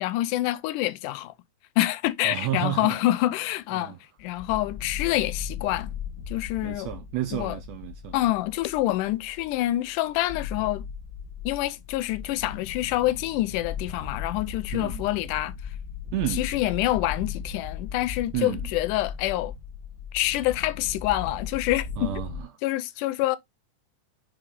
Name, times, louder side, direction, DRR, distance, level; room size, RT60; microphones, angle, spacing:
voice 1, 0.0-1.3 1.8-5.9 6.3-6.9 7.3-7.6 8.1-10.9 11.5-15.8 16.3-19.5 20.1-22.1 22.6-23.4, left 16 dB, 85° left, 2.1 m, -27 dB
voice 2, 2.2-3.0 3.7-4.0 6.6-8.1 14.7-15.0 16.1-16.4 18.3-18.6 22.0-22.5, right 14 dB, 80° right, 1.6 m, -31 dB
sound 1, 4.2-22.4, left 7 dB, 50° left, 1.0 m, -37 dB
5.8 x 5.1 x 3.6 m
omnidirectional pair, 3.7 m